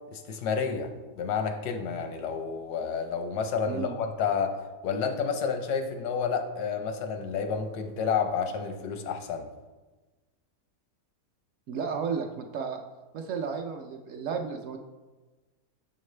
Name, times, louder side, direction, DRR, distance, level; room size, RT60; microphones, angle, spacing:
voice 1, 0.1-0.9 1.1-4.5 4.8-9.5, left 6 dB, 85° left, 6 dB, 1.3 m, -30 dB
voice 2, 3.7-4.0 11.7-12.8 13.1-14.8, right 6 dB, 70° right, 3 dB, 0.8 m, -33 dB
7.0 x 6.5 x 3.2 m, 1.2 s
omnidirectional pair, 1.7 m